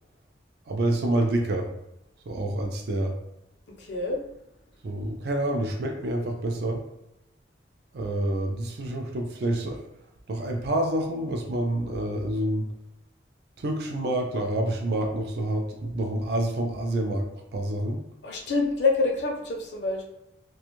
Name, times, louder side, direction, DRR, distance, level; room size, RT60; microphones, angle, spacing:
voice 1, 0.7-1.7 2.3-3.1 4.8-6.8 7.9-9.8 10.3-12.7 13.6-18.1, right 1 dB, 60° right, 2 dB, 0.4 m, -28 dB
voice 2, 3.8-4.2 18.2-20.0, left 3 dB, 65° left, 1 dB, 0.6 m, -26 dB
2.4 x 2.3 x 2.9 m, 0.86 s
head